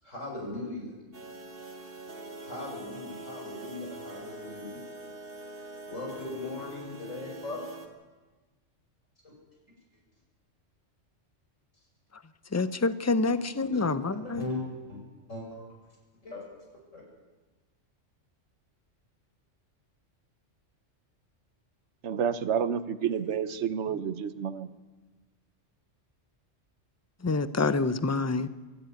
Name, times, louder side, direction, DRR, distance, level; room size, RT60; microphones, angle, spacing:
voice 1, 0.0-0.9 2.4-4.9 5.9-7.6 9.2-9.3 9.9-10.0 11.7-11.9 13.3-14.6 14.9-15.0 15.3-15.7 16.2-16.4 16.7-17.0 23.1-23.4 23.8-23.9, left 2 dB, 85° left, -1 dB, 6.5 m, -39 dB
sound 1, 1.1-7.9, right 2 dB, 45° right, 2.5 m, -44 dB
voice 2, 12.5-14.4 27.2-28.5, left 3 dB, 15° left, 13 dB, 0.6 m, -27 dB
voice 3, 22.0-24.7, right 8 dB, 65° right, 13 dB, 1.2 m, -29 dB
23.5 x 13.5 x 9.2 m, 1.3 s
omnidirectional pair, 1.3 m